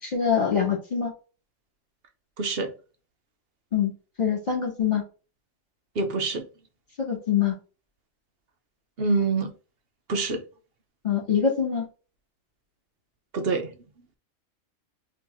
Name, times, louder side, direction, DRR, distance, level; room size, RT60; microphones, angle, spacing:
voice 1, 0.0-1.1 3.7-3.9 4.2-5.0 7.0-7.5 11.0-11.9, left 7 dB, 30° left, 2.7 m, -24 dB
voice 2, 2.4-2.7 6.0-6.4 9.0-9.5 10.1-10.4 13.3-13.7, right 3 dB, 55° right, 0.9 m, -25 dB
4.4 x 3.1 x 3.5 m
omnidirectional pair, 1.4 m